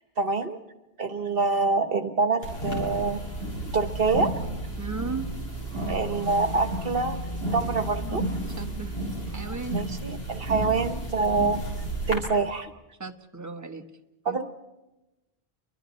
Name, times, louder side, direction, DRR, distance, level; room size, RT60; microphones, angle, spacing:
voice 1, 0.2-0.6 1.0-3.2 3.7-4.3 5.9-7.2 7.5-8.2 9.7-11.6 12.1-12.7 14.2-14.4, right 4 dB, 65° right, 10 dB, 1.4 m, -26 dB
sound 1, 2.4-12.2, right 1 dB, 70° left, 6.7 m, -32 dB
voice 2, 4.8-5.3 8.5-9.0 9.3-9.8 13.0-13.8 14.3-14.4, right 4 dB, 15° right, 6 dB, 1.3 m, -36 dB
29.5 x 23.5 x 4.2 m, 1.0 s
omnidirectional pair, 1.1 m